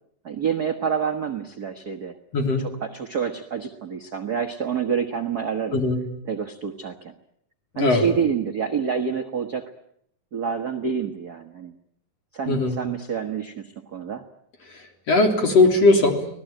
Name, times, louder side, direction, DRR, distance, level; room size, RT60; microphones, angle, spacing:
voice 1, 0.2-2.1 2.8-5.8 6.3-7.1 7.8-9.7 10.3-11.7 12.3-14.2, right 6 dB, 65° right, 5 dB, 0.9 m, -27 dB
voice 2, 2.3-2.6 5.7-6.0 7.7-8.0 12.5-12.8 14.7-16.2, left 2 dB, 45° left, 3 dB, 4.5 m, -19 dB
25.5 x 19.0 x 9.1 m, 0.70 s
omnidirectional pair, 4.0 m